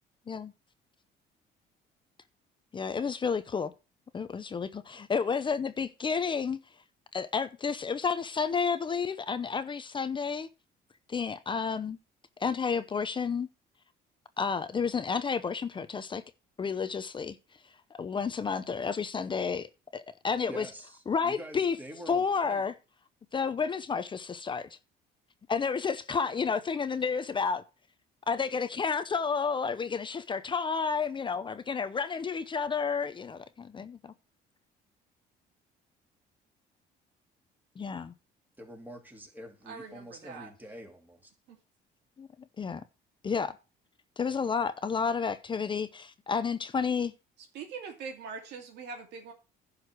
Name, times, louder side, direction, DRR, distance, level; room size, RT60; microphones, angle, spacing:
voice 1, 2.7-3.7 4.1-6.6 7.1-10.5 11.1-12.0 12.4-13.5 14.4-16.2 16.6-17.4 17.9-20.7 21.1-21.8 22.1-22.7 23.3-24.7 25.5-27.6 28.3-34.1 37.8-38.1 42.2-42.3 42.6-42.8 43.2-43.6 44.2-47.1, left 5 dB, 30° left, 0.7 m, -31 dB
voice 2, 20.5-22.6 38.6-41.3, right 1 dB, 10° right, 2.7 m, -46 dB
voice 3, 39.6-40.5 41.5-41.6 47.4-49.3, right 5 dB, 80° right, 2.5 m, -43 dB
11.0 x 4.9 x 6.0 m
cardioid pair, 110°, 17 cm